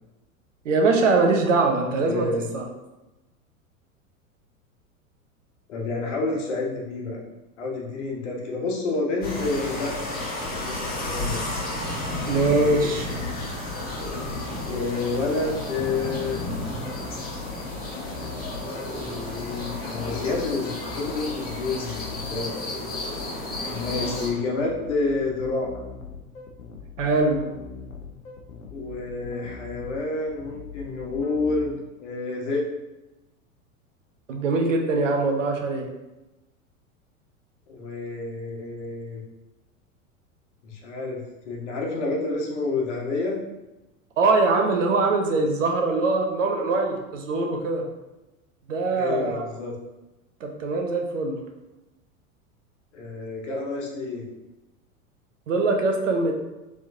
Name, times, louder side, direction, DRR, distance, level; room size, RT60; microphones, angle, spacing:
voice 1, 0.6-2.6 12.3-13.1 27.0-27.4 34.3-35.9 44.2-47.8 48.7-49.4 50.4-51.4 55.5-56.3, right 3 dB, 60° right, 3 dB, 0.8 m, -22 dB
voice 2, 2.0-2.4 5.7-7.2 7.6-10.0 10.5-11.4 14.6-16.4 19.0-22.5 23.6-25.8 28.7-32.6 37.7-39.2 40.6-43.4 48.9-49.7 52.9-54.3, left 3 dB, 55° left, -1 dB, 1.2 m, -29 dB
sound 1, 9.2-24.3, left 1 dB, 20° left, 1.4 m, -32 dB
sound 2, 12.0-31.7, left 5 dB, 75° left, 0.8 m, -41 dB
4.5 x 3.5 x 2.7 m, 1.0 s
figure-of-eight pair, 90°, 43 cm